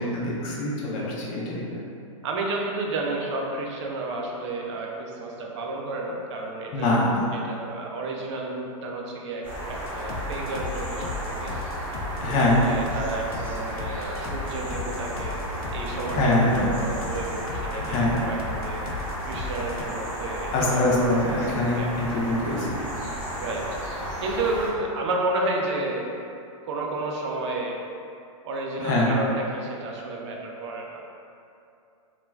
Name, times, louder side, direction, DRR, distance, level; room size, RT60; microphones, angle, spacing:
voice 1, 0.0-1.8 6.7-7.3 12.2-12.6 16.1-16.7 17.8-18.2 20.5-22.8 28.8-29.1, left 1 dB, 35° left, -4 dB, 0.5 m, -24 dB
voice 2, 2.2-11.5 12.2-15.4 15.7-18.8 19.3-22.0 23.3-23.9 24.2-26.1 26.7-27.8 28.4-31.0, right 2 dB, 55° right, -1 dB, 0.4 m, -31 dB
sound 1, 9.4-24.7, equal, 10° right, 0.7 m, -33 dB
sound 2, 9.9-19.8, left 3 dB, 85° left, 0.4 m, -35 dB
2.3 x 2.2 x 3.1 m, 2.6 s
hypercardioid pair, 135°, 18 cm